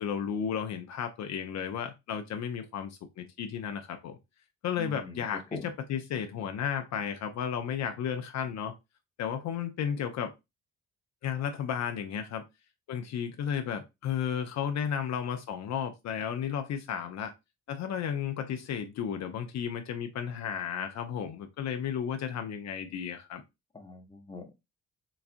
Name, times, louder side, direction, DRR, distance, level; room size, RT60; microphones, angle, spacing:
voice 1, 0.0-4.2 4.6-8.7 9.2-10.3 11.2-12.4 12.9-17.3 17.7-23.4, left 8 dB, 65° left, 0.5 m, -33 dB
voice 2, 4.8-5.7 23.7-24.5, left 2 dB, 15° left, 0.7 m, -43 dB
4.0 x 2.3 x 2.5 m
cardioid pair, 90°, 30 cm